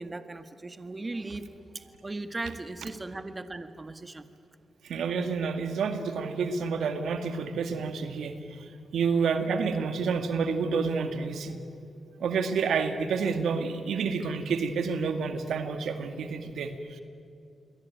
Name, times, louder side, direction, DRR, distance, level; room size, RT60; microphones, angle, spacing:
voice 1, 0.0-1.5 1.7-4.3, right 2 dB, 30° right, 9 dB, 1.8 m, -38 dB
voice 2, 4.8-11.6 12.2-17.0, right 5 dB, 80° right, 8 dB, 2.0 m, -29 dB
28.5 x 22.5 x 9.4 m, 2.5 s
supercardioid pair, 55°, 0 cm